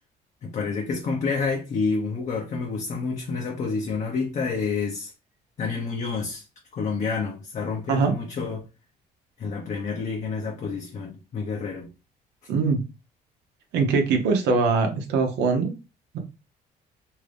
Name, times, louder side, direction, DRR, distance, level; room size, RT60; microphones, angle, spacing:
voice 1, 0.4-5.1 5.6-6.4 6.7-8.6 9.4-11.9, left 4 dB, 45° left, 0.7 m, -29 dB
voice 2, 12.5-12.8 13.7-15.7, right 4 dB, 80° right, 0.8 m, -22 dB
2.7 x 2.5 x 3.3 m
cardioid pair, 110°, 17 cm